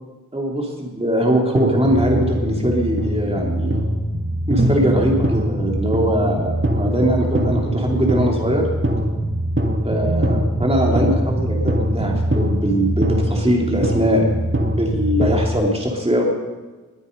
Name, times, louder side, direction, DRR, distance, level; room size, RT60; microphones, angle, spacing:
voice 1, 0.3-3.8 4.5-8.6 9.8-16.4, equal, 20° right, -1 dB, 3.1 m, -21 dB
sound 1, 1.5-15.5, right 1 dB, 35° right, 1.8 m, -22 dB
21.5 x 8.2 x 5.3 m, 1.3 s
cardioid pair, 45°, 33 cm